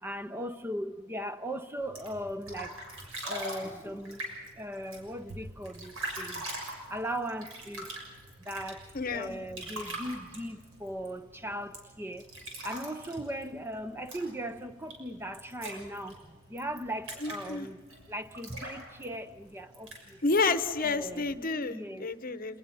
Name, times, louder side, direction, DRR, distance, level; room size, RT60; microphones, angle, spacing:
voice 1, 0.0-2.9 3.2-6.5 6.9-8.0 8.4-12.3 12.6-17.8 18.1-20.2 20.8-21.4 21.7-22.1, equal, 10° right, 0.5 m, -38 dB
sound 1, 1.8-21.4, right 1 dB, 80° right, 6.5 m, -43 dB
voice 2, 8.9-9.3 17.2-17.7 20.2-22.6, left 3 dB, 45° left, 0.9 m, -30 dB
27.0 x 19.5 x 5.5 m
head